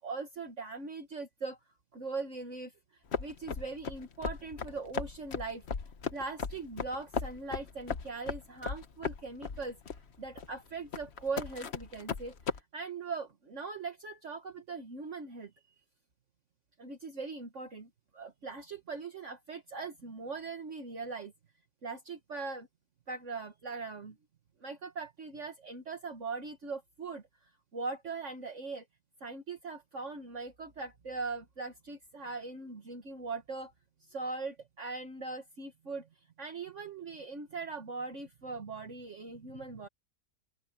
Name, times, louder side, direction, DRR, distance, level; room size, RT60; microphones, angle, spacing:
voice 1, 0.0-1.6 1.9-2.7 3.2-5.6 6.1-9.8 10.2-12.4 12.7-15.5 16.8-21.3 21.8-22.7 23.1-24.2 24.6-27.2 27.7-28.9 29.2-33.7 34.1-36.1 36.4-39.9, right 4 dB, 50° right, 1.9 m, -40 dB
sound 1, 3.1-12.6, left 5 dB, 45° left, 1.3 m, -37 dB
open air
omnidirectional pair, 1.7 m